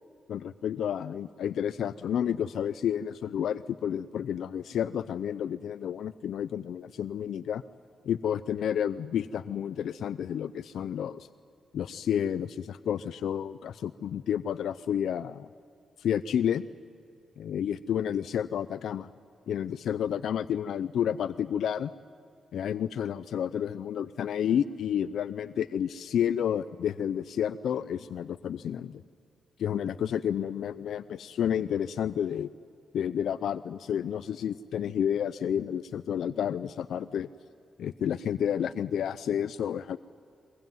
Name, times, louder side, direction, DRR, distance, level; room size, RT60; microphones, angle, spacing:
voice 1, 0.3-7.6 8.0-11.3 11.7-15.5 16.0-16.7 17.4-19.1 19.5-21.9 22.5-29.0 29.6-32.5 32.9-37.3 37.8-40.0, left 9 dB, 80° left, 13 dB, 0.5 m, -30 dB
22.5 x 21.5 x 9.3 m, 2.5 s
wide cardioid pair, 145°, 0 cm